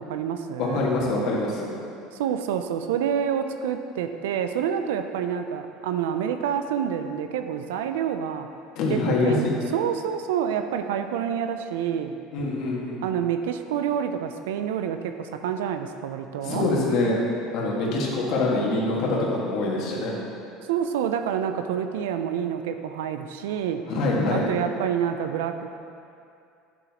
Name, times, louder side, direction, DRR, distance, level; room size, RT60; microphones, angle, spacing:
voice 1, 0.0-0.9 2.1-8.5 8.9-12.2 13.0-16.7 20.7-23.8 24.3-25.7, right 8 dB, 90° right, 8 dB, 0.4 m, -28 dB
voice 2, 0.6-1.7 8.8-9.6 12.3-13.0 16.4-17.2 17.5-20.2 23.9-24.5, left 2 dB, 65° left, -4 dB, 1.8 m, -24 dB
9.9 x 6.2 x 2.9 m, 2.6 s
supercardioid pair, 115°, 0 cm